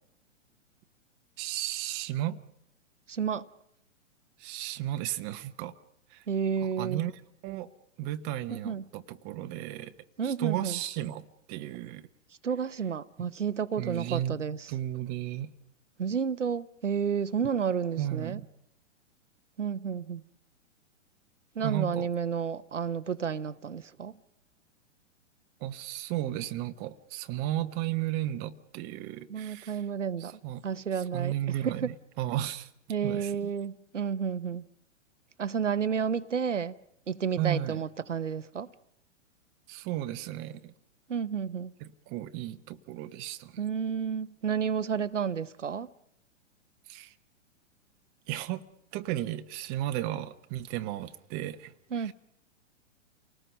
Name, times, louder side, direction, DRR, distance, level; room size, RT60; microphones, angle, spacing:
voice 1, 1.4-2.4 4.4-5.7 6.1-6.2 6.6-7.1 7.4-7.7 8.0-9.9 10.2-12.1 13.8-14.4 14.7-15.5 18.0-18.5 21.6-22.1 25.6-29.8 30.2-30.6 31.0-32.7 33.0-33.5 37.4-37.8 39.7-40.7 41.8-43.6 46.9-47.1 48.3-48.6 48.9-52.1, right 13 dB, 25° right, 1.0 m, -34 dB
voice 2, 3.1-3.5 6.3-7.0 8.5-8.8 10.2-10.8 12.4-14.7 16.0-18.4 19.6-20.2 21.6-24.1 29.3-31.3 31.6-31.9 32.9-34.6 35.4-36.8 37.1-38.7 41.1-41.7 43.6-45.9 51.9-52.1, right 7 dB, 75° right, 0.9 m, -31 dB
29.0 x 19.0 x 5.4 m
figure-of-eight pair, 110°, 37 cm